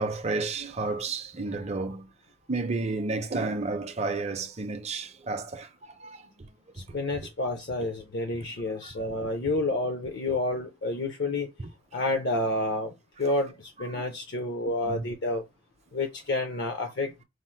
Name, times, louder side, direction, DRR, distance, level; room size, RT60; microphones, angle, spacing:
voice 1, 0.0-2.1 2.5-6.5 6.7-6.8 8.4-8.5 8.8-8.9 11.6-11.7 13.8-14.0 14.8-15.0 16.8-16.9, right 3 dB, 30° right, 0.5 m, -32 dB
voice 2, 6.8-11.5 11.9-12.9 13.2-15.4 15.9-17.2, left 2 dB, 55° left, 0.5 m, -29 dB
4.9 x 2.0 x 4.3 m
head